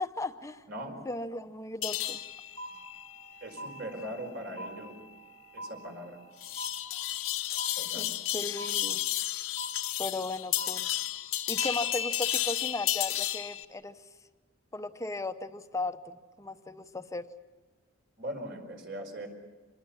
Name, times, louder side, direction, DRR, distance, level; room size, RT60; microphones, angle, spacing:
voice 1, 0.0-0.6 1.0-2.2 7.9-9.0 10.0-10.9 11.5-14.0 14.7-17.3, left 2 dB, 15° left, 9 dB, 0.8 m, -36 dB
sound 1, 1.8-13.6, left 13 dB, 80° left, 1.1 m, -33 dB
sound 2, 2.6-3.3 3.6-4.3 4.6-5.3 5.6-6.3 6.6-7.3 7.6-8.3 8.6-9.3 9.6-10.3 10.6-11.3 11.6-12.3, right 1 dB, 75° right, 5.2 m, -44 dB
voice 2, 3.4-5.0 5.5-6.2 7.8-8.1 18.2-19.3, right 1 dB, 55° right, 3 dB, 5.0 m, -40 dB
26.0 x 21.0 x 7.1 m, 1.3 s
head